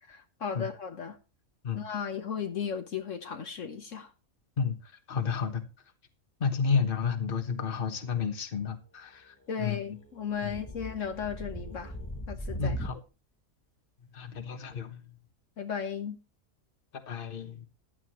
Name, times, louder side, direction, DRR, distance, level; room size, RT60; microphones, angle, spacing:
voice 1, 0.1-1.2 1.7-4.1 9.5-11.9 12.3-12.8 15.6-16.2, left 7 dB, 65° left, 1.4 m, -35 dB
voice 2, 5.1-5.6 6.4-9.8 10.4-10.6 12.6-13.0 14.1-15.0 17.1-17.7, left 6 dB, 40° left, 1.4 m, -31 dB
sound 1, 10.1-13.0, right 1 dB, 10° left, 0.9 m, -38 dB
15.0 x 11.0 x 3.1 m
omnidirectional pair, 1.4 m